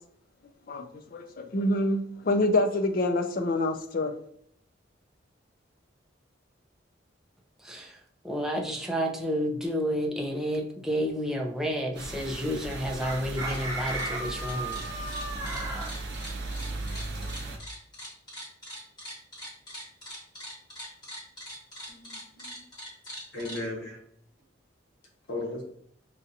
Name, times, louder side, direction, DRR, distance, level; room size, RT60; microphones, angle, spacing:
voice 1, 0.7-4.1, left 1 dB, 50° left, 6 dB, 0.5 m, -26 dB
voice 2, 8.2-14.8, equal, 5° right, 0 dB, 0.5 m, -30 dB
sound 1, 11.9-17.6, right 2 dB, 60° right, 0.8 m, -37 dB
Chicken rooster, 13.0-15.9, right 1 dB, 20° right, 0.9 m, -35 dB
sound 2, 13.5-13.6 13.9-23.6, equal, 20° left, 1.5 m, -42 dB
voice 3, 21.9-22.6 23.3-24.0 25.3-25.6, left 2 dB, 75° left, -2 dB, 1.3 m, -36 dB
5.4 x 2.5 x 2.7 m, 0.62 s
head